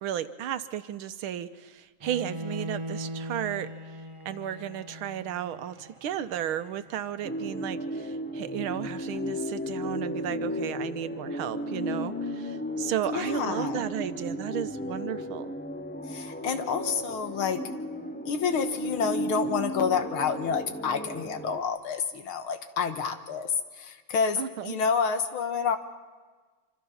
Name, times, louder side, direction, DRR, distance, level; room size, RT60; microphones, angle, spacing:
voice 1, 0.0-4.0 4.3-15.5 24.4-24.8, right 10 dB, 85° right, 11 dB, 1.7 m, -34 dB
Bowed string instrument, 2.0-8.0, right 1 dB, 20° right, 0.9 m, -41 dB
sound 1, 7.2-21.6, equal, 10° left, 0.7 m, -34 dB
voice 2, 13.1-13.8 16.1-17.6 18.3-25.8, left 6 dB, 90° left, 8 dB, 2.2 m, -29 dB
26.0 x 26.0 x 5.6 m, 1.4 s
omnidirectional pair, 2.3 m